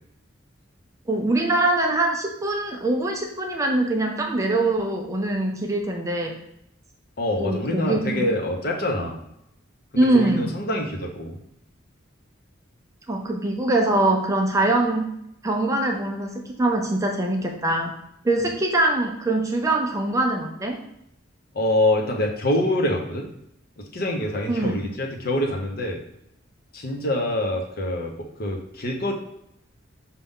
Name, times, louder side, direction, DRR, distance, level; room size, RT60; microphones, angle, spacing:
voice 1, 1.1-6.3 7.4-8.2 10.0-10.5 13.1-15.0 15.4-17.9 18.2-20.8 24.5-24.8, right 2 dB, 15° right, 2 dB, 0.4 m, -23 dB
voice 2, 7.2-9.2 9.9-11.4 21.5-23.3 23.8-26.0 26.7-29.1, left 1 dB, 50° left, 1 dB, 0.7 m, -25 dB
5.2 x 2.3 x 3.5 m, 0.77 s
head